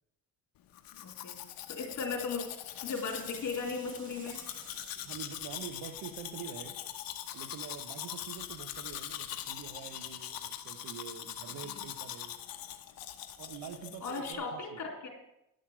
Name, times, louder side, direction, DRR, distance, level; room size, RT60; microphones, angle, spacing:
Domestic sounds home sounds, 0.7-14.3, left 11 dB, 70° left, 1.1 m, -42 dB
voice 1, 0.9-1.4 1.7-2.4 2.8-4.4 11.6-11.9 14.0-15.1, left 4 dB, 55° left, 0 dB, 4.0 m, -37 dB
Water tap faucet / Sink (filling or washing), 2.7-6.5 7.0-7.1, right 1 dB, 20° right, 2.9 m, -53 dB
voice 2, 5.0-6.8 7.3-12.4 13.4-14.9, right 8 dB, 80° right, 10 dB, 1.2 m, -46 dB
11.0 x 6.5 x 7.3 m, 0.85 s
cardioid pair, 95°, 36 cm